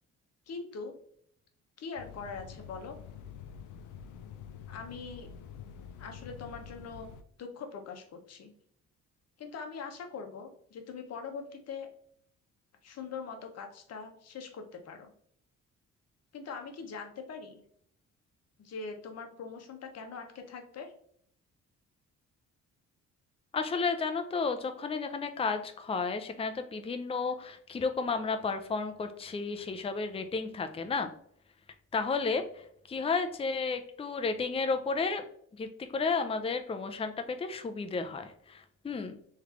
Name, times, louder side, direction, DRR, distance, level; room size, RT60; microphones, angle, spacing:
voice 1, 0.5-0.9 1.8-3.0 4.7-5.3 6.0-7.1 7.4-8.5 9.4-11.9 12.8-15.1 16.3-17.6 18.6-20.9, left 5 dB, 55° left, 4 dB, 1.0 m, -42 dB
sound 1, 2.0-7.2, left 7 dB, 80° left, 0.6 m, -47 dB
voice 2, 23.5-31.1 31.9-35.3 35.6-39.2, left 4 dB, 20° left, 7 dB, 0.5 m, -32 dB
3.2 x 3.2 x 3.6 m, 0.65 s
cardioid pair, 90°, 30 cm